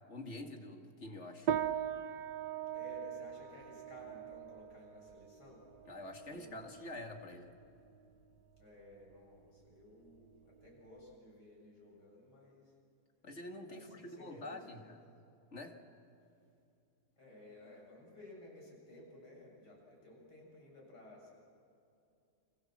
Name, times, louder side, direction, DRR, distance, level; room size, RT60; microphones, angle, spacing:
voice 1, 0.1-1.5 5.9-7.5 13.2-15.0 15.5-15.8, left 2 dB, 45° left, 4 dB, 2.4 m, -47 dB
sound 1, 1.5-11.1, right 9 dB, 90° right, 1.5 m, -42 dB
voice 2, 2.7-5.6 6.3-6.6 8.6-12.7 13.7-14.9 17.2-21.3, left 1 dB, 85° left, -2 dB, 8.0 m, -55 dB
30.0 x 25.0 x 7.5 m, 2.6 s
omnidirectional pair, 1.7 m